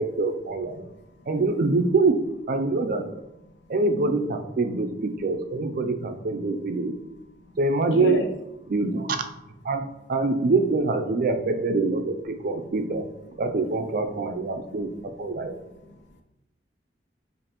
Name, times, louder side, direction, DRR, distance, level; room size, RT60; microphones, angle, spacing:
voice 1, 0.0-0.9 1.3-3.1 3.7-7.0 7.6-8.2 8.7-9.3 9.6-13.1 13.4-15.5, right 3 dB, 55° right, 6 dB, 0.4 m, -25 dB
voice 2, 0.8-1.3 7.4-7.5 7.9-8.3 15.4-16.2, left 2 dB, 85° left, 4 dB, 0.6 m, -33 dB
5.1 x 2.5 x 2.9 m, 0.90 s
head